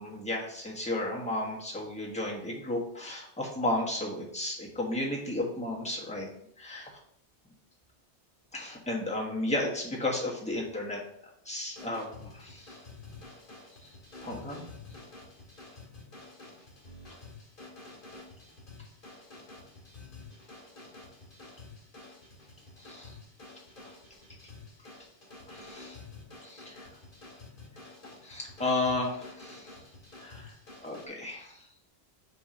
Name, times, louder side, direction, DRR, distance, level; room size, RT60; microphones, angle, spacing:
voice 1, 0.0-6.3 6.6-7.0 8.5-11.0 11.4-12.8 13.8-13.9 14.2-14.7 22.8-23.1 23.8-23.9 25.5-26.0 26.4-26.8 28.2-29.7 30.2-30.6 30.8-31.7, left 2 dB, 5° left, -3 dB, 1.2 m, -33 dB
sound 1, 11.6-31.1, left 3 dB, 50° left, 1.9 m, -49 dB
7.8 x 2.9 x 5.1 m, 0.71 s
omnidirectional pair, 1.1 m